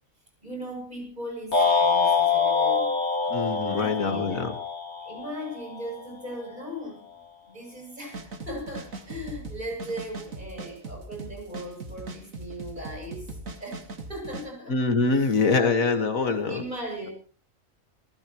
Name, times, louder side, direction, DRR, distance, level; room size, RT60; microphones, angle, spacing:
voice 1, 0.4-2.9 3.5-4.5 5.0-7.0 7.5-14.8 15.1-15.5 16.5-17.1, equal, 35° right, 1 dB, 8.2 m, -38 dB
sound 1, 1.5-5.8, left 5 dB, 55° left, 3.2 m, -25 dB
voice 2, 3.3-4.5 14.7-16.6, left 4 dB, 80° left, 8 dB, 2.2 m, -24 dB
sound 2, 8.0-14.5, right 2 dB, 80° right, 2.4 m, -39 dB
28.5 x 15.0 x 3.1 m, 0.40 s
omnidirectional pair, 1.4 m